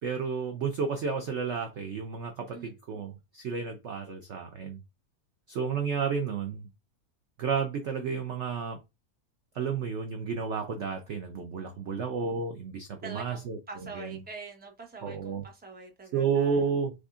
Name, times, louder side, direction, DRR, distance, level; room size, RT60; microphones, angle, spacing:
voice 1, 0.0-4.8 5.5-6.7 7.4-8.8 9.5-14.2 15.0-15.4 16.1-16.9, right 6 dB, 65° right, 0.7 m, -31 dB
voice 2, 11.6-12.0 13.0-16.7, right 4 dB, 10° right, 0.7 m, -45 dB
6.2 x 2.6 x 2.4 m
omnidirectional pair, 1.8 m